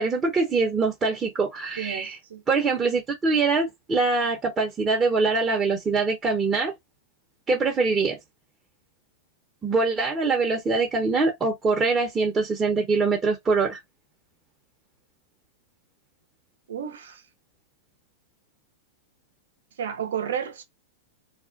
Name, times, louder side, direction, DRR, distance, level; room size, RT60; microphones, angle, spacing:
voice 1, 0.0-2.2 2.5-6.7 7.5-8.2 9.6-13.8, right 4 dB, 20° right, 0.8 m, -23 dB
voice 2, 1.8-2.4 16.7-17.2 19.8-20.6, right 8 dB, 70° right, 0.7 m, -32 dB
2.5 x 2.1 x 2.5 m
hypercardioid pair, 105°, 0 cm